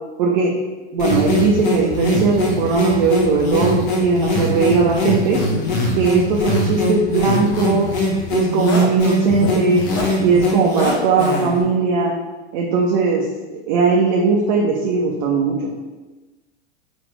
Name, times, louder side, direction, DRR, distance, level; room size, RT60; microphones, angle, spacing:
voice 1, 0.2-0.5 0.9-5.4 5.9-7.9 8.3-9.8 10.2-12.1 12.5-13.2 13.7-15.6, right 4 dB, 45° right, -2 dB, 0.6 m, -18 dB
sound 1, 1.0-11.6, left 1 dB, 40° left, 0.8 m, -21 dB
4.1 x 2.4 x 3.1 m, 1.2 s
figure-of-eight pair, 90°, 33 cm